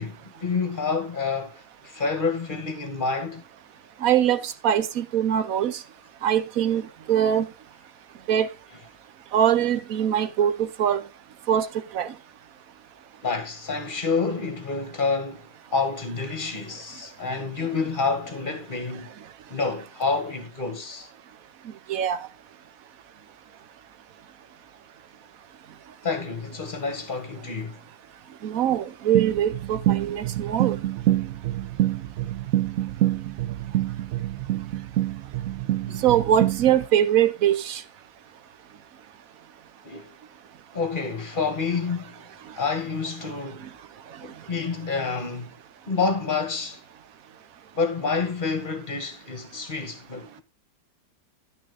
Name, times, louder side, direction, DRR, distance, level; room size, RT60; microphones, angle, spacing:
voice 1, 0.0-1.5 1.8-3.4 13.2-19.1 19.5-21.1 26.0-27.8 35.9-36.0 39.8-40.1 40.7-42.2 42.6-43.7 44.2-45.5 45.9-46.8 47.8-50.4, left 4 dB, 30° left, 1.8 m, -28 dB
voice 2, 4.0-5.8 6.2-7.5 8.3-8.5 9.3-11.0 11.5-11.7 11.9-12.1 21.9-22.2 28.4-30.8 36.0-37.8, right 10 dB, 55° right, 1.1 m, -22 dB
sound 1, 29.1-36.9, right 13 dB, 75° right, 0.7 m, -26 dB
11.0 x 6.3 x 3.9 m
omnidirectional pair, 2.0 m